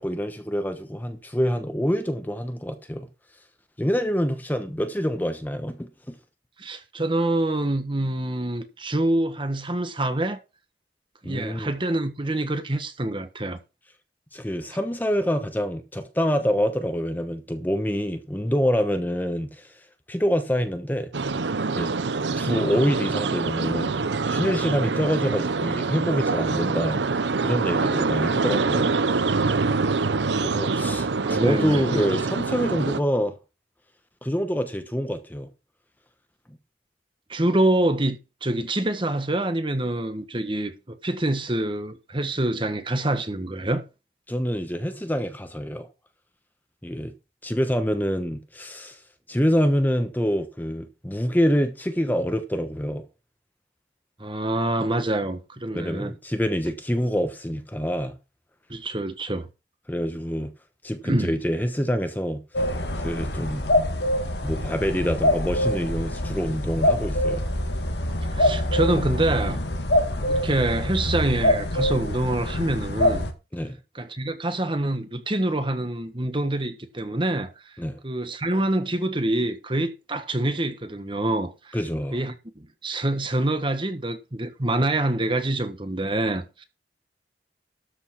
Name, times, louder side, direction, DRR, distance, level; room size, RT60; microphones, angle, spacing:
voice 1, 0.0-3.1 3.8-6.2 11.2-11.7 14.3-19.7 20.1-21.1 21.7-21.9 22.3-24.0 24.3-27.0 27.4-28.9 30.4-33.3 34.2-35.5 36.5-36.6 44.3-45.9 46.8-47.1 47.4-49.0 49.3-53.0 55.7-58.2 59.9-60.5 60.8-62.4 63.0-63.6 64.4-67.5 73.5-73.8 77.8-78.0 81.7-82.2, equal, 10° left, 1.0 m, -26 dB
voice 2, 6.6-10.4 11.2-13.6 31.2-32.1 37.3-43.8 54.2-56.1 58.7-59.5 61.0-61.4 68.3-69.6 70.3-73.3 73.9-77.8 78.0-81.8 82.1-86.6, right 1 dB, 30° right, 1.3 m, -26 dB
sound 1, 21.1-33.0, right 4 dB, 85° right, 0.7 m, -25 dB
sound 2, 62.5-73.3, left 1 dB, 70° left, 1.7 m, -25 dB
13.0 x 5.3 x 5.8 m
head